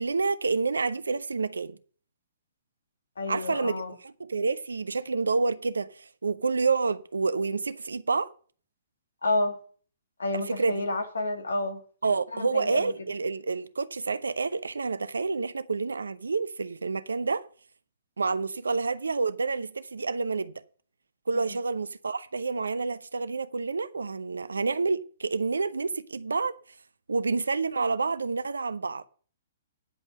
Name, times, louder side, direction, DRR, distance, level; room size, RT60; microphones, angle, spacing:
voice 1, 0.0-1.8 3.3-8.3 10.3-10.8 12.0-17.5 18.2-20.5 21.3-26.5 27.1-29.1, right 4 dB, 80° right, 0.7 m, -28 dB
voice 2, 3.2-3.9 9.2-9.6 10.2-11.8 12.3-12.8 21.4-21.5, left 2 dB, 80° left, 2.2 m, -29 dB
10.0 x 5.3 x 7.5 m
figure-of-eight pair, 125°, 0 cm